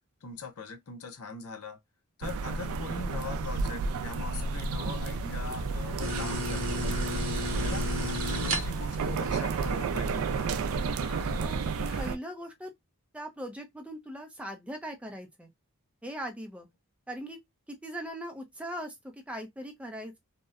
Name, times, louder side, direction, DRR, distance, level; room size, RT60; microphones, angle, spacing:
voice 1, 0.2-1.8 2.2-6.9 7.6-10.3, left 4 dB, 85° left, 0.6 m, -41 dB
sound 1, 2.2-12.2, right 4 dB, 75° right, 0.3 m, -32 dB
sound 2, 3.9-12.1, equal, 55° left, 1.3 m, -42 dB
sound 3, 6.0-9.0, equal, 55° right, 0.8 m, -33 dB
voice 2, 11.4-11.7 12.0-12.7 13.1-15.5 16.0-16.7 17.1-17.4 17.7-20.2, equal, 5° right, 0.4 m, -40 dB
2.7 x 2.1 x 2.3 m
head